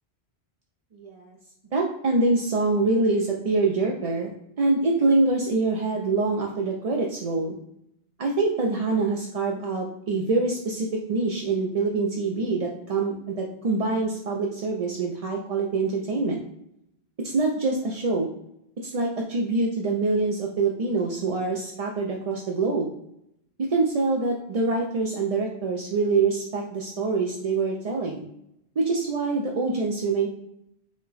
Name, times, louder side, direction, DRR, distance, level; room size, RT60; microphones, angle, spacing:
voice 1, 0.9-1.4 1.7-4.3 4.6-7.6 8.2-16.4 17.2-18.3 18.9-22.9 23.7-28.2 28.8-30.3, right 3 dB, 50° right, 0 dB, 0.5 m, -25 dB
5.1 x 2.2 x 3.9 m, 0.79 s
omnidirectional pair, 1.1 m